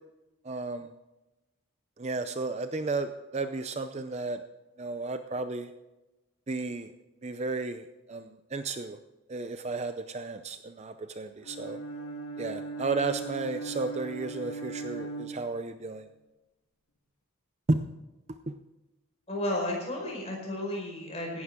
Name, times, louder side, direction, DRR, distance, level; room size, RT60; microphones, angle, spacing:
voice 1, 0.4-0.9 2.0-4.4 4.8-5.7 6.5-6.9 7.2-9.0 9.3-11.8 12.4-16.1 17.7-17.8 18.5-18.6, right 3 dB, 30° right, 9 dB, 0.5 m, -33 dB
Bowed string instrument, 11.4-16.0, right 3 dB, 80° left, 1.8 m, -39 dB
voice 2, 19.3-21.4, left 1 dB, 30° left, -1 dB, 4.9 m, -33 dB
17.0 x 12.5 x 3.7 m, 1.0 s
head